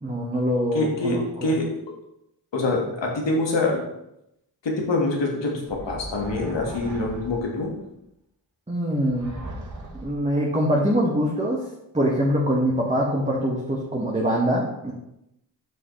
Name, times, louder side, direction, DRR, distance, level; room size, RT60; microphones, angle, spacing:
voice 1, 0.0-1.5 8.7-9.3 9.9-11.6 11.9-14.9, equal, 15° right, -4 dB, 1.6 m, -24 dB
voice 2, 0.7-1.7 2.5-3.8 4.6-7.8, left 2 dB, 65° left, 0 dB, 1.9 m, -25 dB
sound 1, 5.7-7.7 9.0-10.4, right 1 dB, 40° right, 1.9 m, -38 dB
7.5 x 5.9 x 3.3 m, 0.82 s
supercardioid pair, 45°, 47 cm